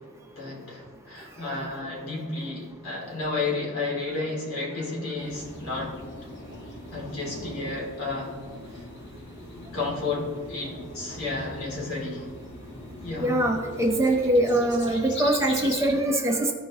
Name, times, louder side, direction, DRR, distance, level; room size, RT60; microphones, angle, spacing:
voice 1, 0.0-6.0 6.9-8.4 8.7-8.8 9.5-12.3 13.0-13.3, left 3 dB, 75° left, -4 dB, 2.8 m, -32 dB
sound 1, 5.2-15.9, left 1 dB, 55° left, 1.5 m, -40 dB
voice 2, 13.2-16.5, right 1 dB, 15° right, 1 dB, 0.9 m, -23 dB
15.0 x 5.2 x 3.0 m, 1.5 s
head